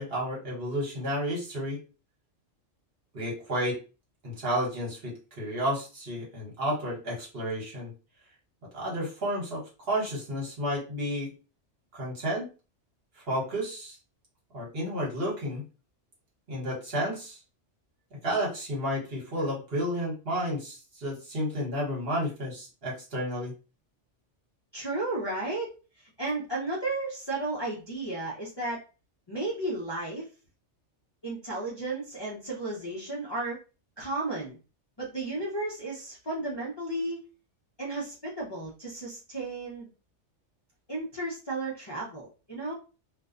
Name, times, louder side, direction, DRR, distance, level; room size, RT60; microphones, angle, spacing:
voice 1, 0.0-1.8 3.1-3.8 4.2-7.9 8.7-11.3 11.9-12.4 13.3-13.9 14.5-15.6 16.5-17.4 18.2-23.5, equal, 55° right, -4 dB, 1.3 m, -31 dB
voice 2, 24.7-25.7 26.0-28.8 29.3-30.3 31.2-33.6 34.0-34.6 35.0-37.2 37.8-39.9 40.9-42.7, right 2 dB, 30° left, -6 dB, 0.5 m, -33 dB
2.5 x 2.2 x 2.4 m, 0.32 s
omnidirectional pair, 1.2 m